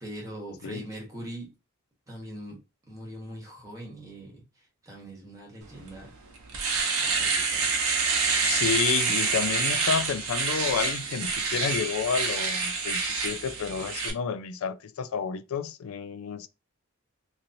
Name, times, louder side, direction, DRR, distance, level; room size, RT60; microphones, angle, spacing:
voice 1, 0.0-1.5 2.1-2.6 2.9-4.4 4.8-6.1 7.0-7.7, right 1 dB, 15° right, 1.1 m, -41 dB
Domestic sounds home sounds, 5.9-6.0 6.4-14.1, right 5 dB, 80° right, 0.8 m, -27 dB
voice 2, 8.4-16.5, left 6 dB, 70° left, 0.4 m, -30 dB
3.0 x 2.6 x 2.6 m
head